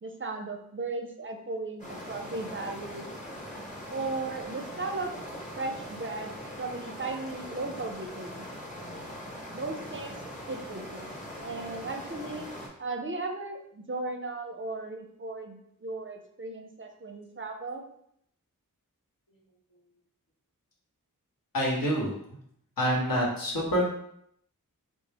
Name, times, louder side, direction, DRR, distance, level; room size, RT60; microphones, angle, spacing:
voice 1, 0.0-3.1 3.9-5.1 5.6-6.3 6.6-8.4 9.5-12.5 12.8-17.8, right 3 dB, 35° right, 4 dB, 0.5 m, -36 dB
sound 1, 1.8-12.7, equal, 20° left, 1.0 m, -41 dB
voice 2, 21.5-22.2 22.8-23.8, equal, 75° left, -3 dB, 1.1 m, -26 dB
3.6 x 2.0 x 3.3 m, 0.71 s
wide cardioid pair, 60°, 34 cm